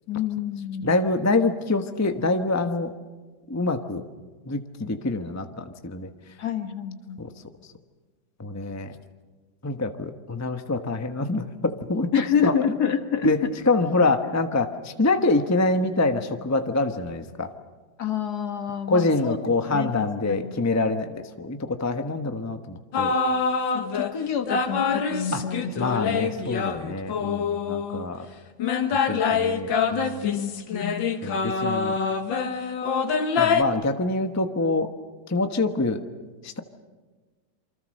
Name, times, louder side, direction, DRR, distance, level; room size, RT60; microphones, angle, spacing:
voice 1, 0.1-0.9 6.4-7.2 12.1-13.3 18.0-19.4 19.7-20.5 23.7-25.7 26.0-26.2 30.2-31.1, left 8 dB, 60° left, 8 dB, 1.9 m, -28 dB
voice 2, 0.8-2.9 3.5-4.0 4.5-6.1 7.2-7.3 8.4-8.9 9.6-12.1 12.4-12.8 13.2-13.4 13.6-17.5 18.9-23.2 25.3-25.4 25.8-28.3 28.9-30.3 31.2-32.0 33.4-34.9 35.3-36.0 36.4-36.6, left 2 dB, 10° left, 7 dB, 0.9 m, -25 dB
sound 1, 22.9-24.1 24.5-28.1 28.6-33.6, left 5 dB, 85° left, 2.2 m, -25 dB
27.5 x 25.0 x 6.5 m, 1.3 s
omnidirectional pair, 2.0 m